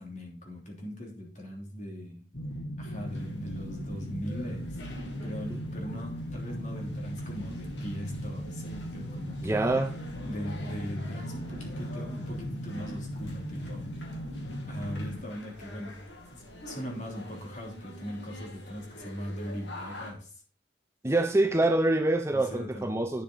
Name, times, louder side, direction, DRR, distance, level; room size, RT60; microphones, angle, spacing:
voice 1, 0.0-2.2 2.8-9.7 10.2-13.9 14.7-20.3 22.3-22.9, equal, 40° left, 3.2 m, -40 dB
sound 1, 2.3-15.2, equal, 60° left, 2.2 m, -37 dB
sound 2, 2.8-20.1, left 1 dB, 75° left, 2.6 m, -48 dB
voice 2, 9.4-10.0 21.0-23.2, right 2 dB, 15° right, 0.6 m, -25 dB
10.0 x 7.0 x 3.8 m
head